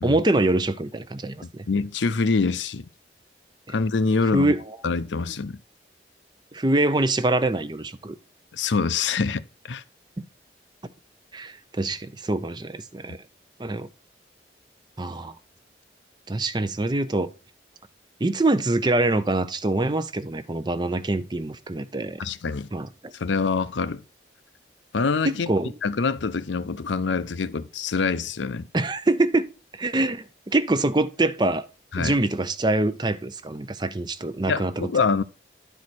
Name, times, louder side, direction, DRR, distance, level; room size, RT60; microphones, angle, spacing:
voice 1, 0.0-1.6 4.3-4.6 6.5-8.2 10.2-10.3 11.3-13.2 13.6-13.9 15.0-15.3 16.3-17.3 18.2-22.2 22.7-22.9 25.3-25.7 28.7-31.7 32.0-34.7, right 2 dB, 25° right, 0.6 m, -24 dB
voice 2, 1.4-2.9 3.7-4.5 4.8-5.6 8.5-9.8 22.2-22.7 23.1-24.0 24.9-25.5 25.8-28.7 31.9-32.1 34.5-35.2, left 4 dB, 90° left, 0.6 m, -25 dB
10.5 x 4.7 x 4.2 m
head